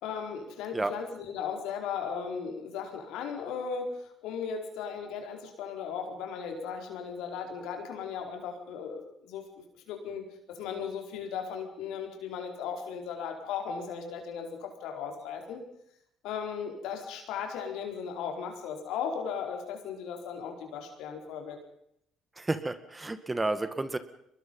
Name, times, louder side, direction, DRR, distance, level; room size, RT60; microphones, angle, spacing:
voice 1, 0.0-10.2 10.5-15.6 16.2-21.6, left 6 dB, 75° left, 3 dB, 4.7 m, -37 dB
voice 2, 22.4-24.0, right 2 dB, 20° right, 12 dB, 2.0 m, -31 dB
24.0 x 21.5 x 5.6 m, 0.74 s
hypercardioid pair, 60°, 0 cm